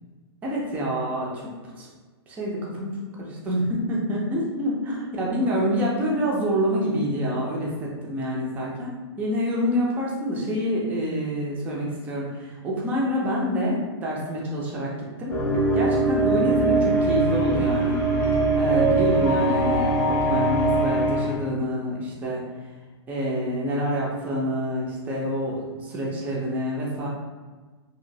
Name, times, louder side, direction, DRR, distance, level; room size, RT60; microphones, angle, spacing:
voice 1, 0.4-1.5 1.8-1.9 2.3-15.4 15.7-18.0 18.5-22.4 23.1-27.1, equal, 10° right, -4 dB, 0.4 m, -27 dB
sound 1, 15.3-21.4, right 2 dB, 20° left, 0.8 m, -22 dB
3.0 x 2.7 x 2.6 m, 1.3 s
hypercardioid pair, 160°, 14 cm